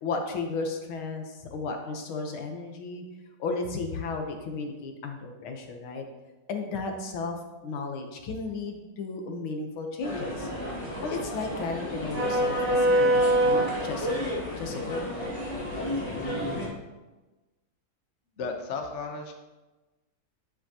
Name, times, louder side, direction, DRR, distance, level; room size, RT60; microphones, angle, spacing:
voice 1, 0.0-3.0 3.4-6.0 6.5-10.5 11.0-15.3, left 3 dB, 75° left, 3 dB, 1.8 m, -34 dB
sound 1, 10.0-16.7, right 1 dB, 15° left, 2.0 m, -27 dB
voice 2, 18.4-19.3, left 4 dB, 45° left, 3 dB, 1.0 m, -34 dB
9.9 x 8.0 x 2.9 m, 1.1 s
omnidirectional pair, 2.3 m